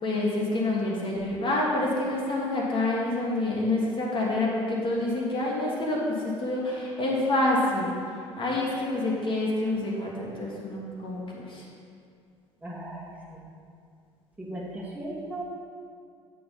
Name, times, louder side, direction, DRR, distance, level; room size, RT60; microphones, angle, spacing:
voice 1, 0.0-7.9 8.4-11.6, left 2 dB, 35° left, -3 dB, 1.5 m, -27 dB
voice 2, 12.6-13.4 14.4-15.4, right 1 dB, 10° right, -5 dB, 1.7 m, -37 dB
8.4 x 4.0 x 5.4 m, 2.3 s
figure-of-eight pair, 60°, 14 cm